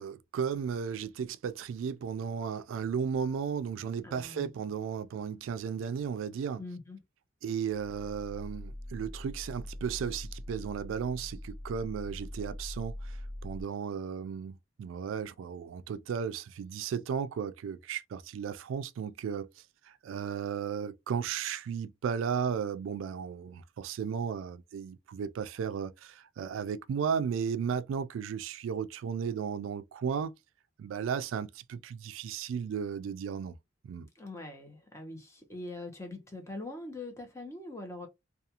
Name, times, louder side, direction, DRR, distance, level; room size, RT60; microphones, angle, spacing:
voice 1, 0.0-6.6 7.4-13.2 13.4-19.5 19.9-30.3 30.8-33.6 33.8-34.1, right 7 dB, 85° right, 0.3 m, -35 dB
voice 2, 4.0-4.5 6.6-7.0 34.2-38.1, left 2 dB, 15° left, 0.7 m, -42 dB
sound 1, 7.7-13.6, left 1 dB, 65° left, 1.0 m, -42 dB
2.4 x 2.3 x 2.7 m
head